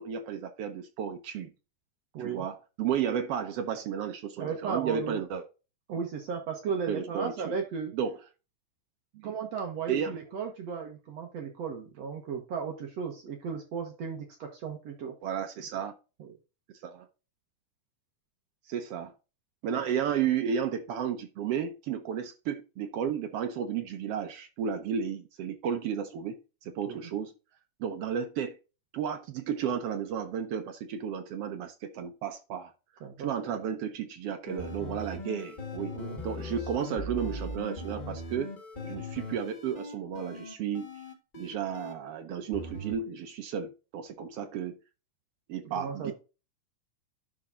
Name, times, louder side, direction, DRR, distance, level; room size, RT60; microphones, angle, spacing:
voice 1, 0.0-1.5 2.2-5.4 6.9-7.5 7.9-8.1 9.1-9.3 9.9-10.1 15.2-15.9 16.8-17.1 18.7-19.1 19.6-27.3 27.8-28.6 28.9-32.7 33.2-36.0 36.2-38.5 38.8-40.9 41.4-44.7 45.5-46.1, right 8 dB, 85° right, 1.3 m, -33 dB
voice 2, 2.1-2.5 4.4-5.2 5.9-7.9 9.2-15.1 16.2-16.3 19.6-19.8 26.8-27.0 33.0-33.5 35.9-36.2 45.8-46.1, right 6 dB, 60° right, 2.1 m, -35 dB
sound 1, 34.5-41.9 42.5-43.0, left 1 dB, 90° left, 0.4 m, -40 dB
11.5 x 3.9 x 3.7 m
omnidirectional pair, 3.7 m